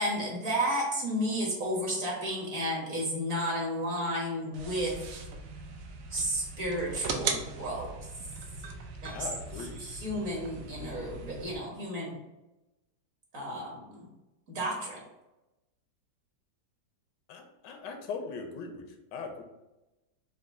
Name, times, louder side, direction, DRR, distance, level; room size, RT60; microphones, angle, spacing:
voice 1, 0.0-5.0 6.1-7.9 9.0-9.2 9.8-12.2 13.3-14.1 14.5-15.0, equal, 50° right, -3 dB, 1.6 m, -32 dB
sound 1, 4.5-11.5, right 4 dB, 70° right, 0.8 m, -39 dB
voice 2, 9.1-9.8 17.3-19.4, left 5 dB, 85° left, 5 dB, 1.2 m, -40 dB
4.8 x 2.3 x 3.5 m, 0.99 s
omnidirectional pair, 1.9 m